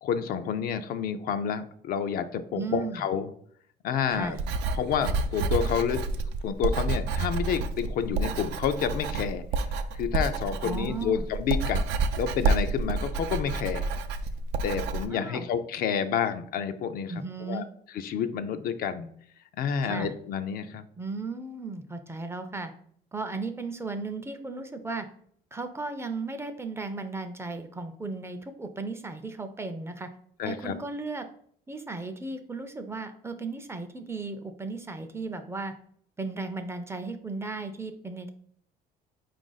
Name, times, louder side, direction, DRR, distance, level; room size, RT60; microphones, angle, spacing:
voice 1, 0.0-3.3 3.8-4.4 4.7-6.0 6.4-9.4 9.9-11.8 12.2-13.9 14.6-17.6 17.9-19.1 19.6-20.8 30.4-30.7, left 7 dB, 60° left, 10 dB, 0.4 m, -29 dB
voice 2, 2.5-3.0 4.1-4.4 10.6-11.3 15.1-15.5 17.1-17.7 19.8-20.1 21.0-22.7 23.1-25.1 25.5-30.1 30.4-31.3 31.7-35.7 36.2-38.3, right 3 dB, 15° right, 7 dB, 0.4 m, -35 dB
Writing, 4.2-15.0, right 3 dB, 85° right, 0.4 m, -29 dB
4.4 x 2.5 x 3.9 m, 0.63 s
cardioid pair, 110°, 17 cm